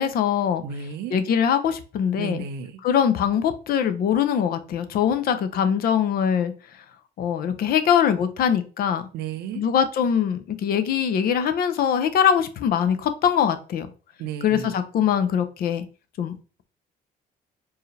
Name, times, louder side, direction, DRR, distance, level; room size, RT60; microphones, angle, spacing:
voice 1, 0.0-0.6 1.1-2.4 2.8-6.8 7.2-9.1 9.5-13.9 14.4-15.9 16.2-16.3, left 8 dB, 60° left, 10 dB, 0.7 m, -22 dB
voice 2, 0.6-1.2 2.2-2.8 9.1-9.6 14.2-14.8, right 7 dB, 75° right, 9 dB, 0.7 m, -33 dB
4.6 x 2.8 x 3.2 m, 0.35 s
cardioid pair, 110°, 17 cm